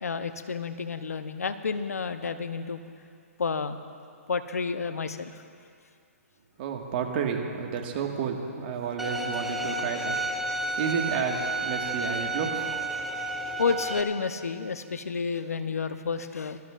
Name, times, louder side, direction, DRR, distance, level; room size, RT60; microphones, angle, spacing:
voice 1, 0.0-2.8 3.4-3.8 4.3-5.3 13.6-16.6, left 5 dB, 80° left, 10 dB, 0.8 m, -30 dB
voice 2, 6.6-10.4 10.7-12.7 13.5-13.6, right 6 dB, 45° right, 2 dB, 1.7 m, -31 dB
Bowed string instrument, 9.0-14.0, right 1 dB, ahead, 0.6 m, -31 dB
23.0 x 13.0 x 2.5 m, 2.3 s
hypercardioid pair, 130°, 8 cm